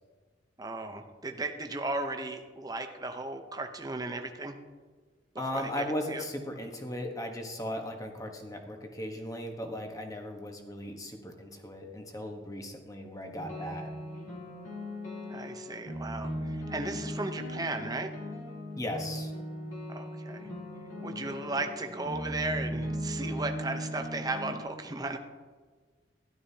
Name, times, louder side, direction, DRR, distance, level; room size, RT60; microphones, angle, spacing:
voice 1, 0.6-4.6 5.3-6.2 15.3-18.1 19.9-20.5 21.0-25.2, right 2 dB, 20° right, 5 dB, 0.7 m, -36 dB
voice 2, 5.4-13.9 18.8-19.3, left 1 dB, 20° left, 3 dB, 1.1 m, -37 dB
sound 1, 13.3-24.6, equal, 80° left, 2.9 m, -38 dB
13.0 x 12.0 x 2.8 m, 1.4 s
head